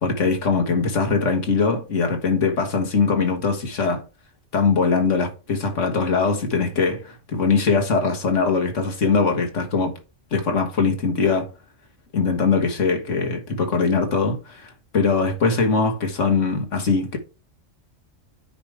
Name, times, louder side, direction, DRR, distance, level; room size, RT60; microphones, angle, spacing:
voice 1, 0.0-4.0 4.5-9.9 10.3-11.5 12.1-17.2, left 4 dB, 65° left, 1.8 m, -21 dB
9.7 x 5.0 x 3.3 m
omnidirectional pair, 1.4 m